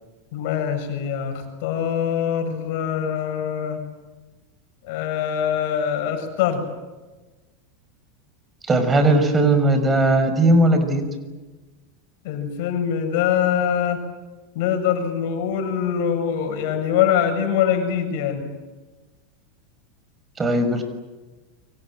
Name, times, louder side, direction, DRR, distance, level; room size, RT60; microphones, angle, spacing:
voice 1, 0.3-3.8 4.8-6.6 12.2-14.0 14.5-18.5, left 8 dB, 60° left, 6 dB, 7.1 m, -23 dB
voice 2, 8.7-11.0 20.4-20.8, right 1 dB, 20° right, 8 dB, 5.7 m, -18 dB
30.0 x 24.5 x 7.7 m, 1.2 s
hypercardioid pair, 100°, 0 cm